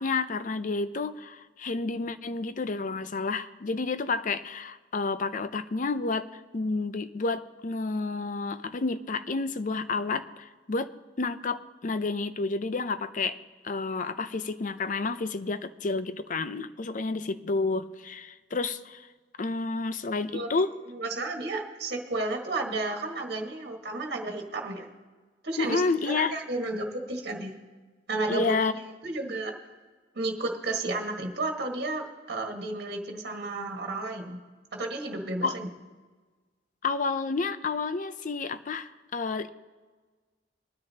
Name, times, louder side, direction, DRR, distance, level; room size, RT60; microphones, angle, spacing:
voice 1, 0.0-13.4 13.6-19.1 19.4-20.7 25.6-26.3 28.3-28.7 35.4-35.6 36.8-39.5, left 3 dB, 45° left, 12 dB, 0.5 m, -30 dB
voice 2, 20.9-24.9 25.4-27.5 28.1-28.4 29.0-29.5 30.1-34.4 34.7-35.7, right 2 dB, 60° right, 1 dB, 1.6 m, -32 dB
22.0 x 9.8 x 2.8 m, 1.4 s
head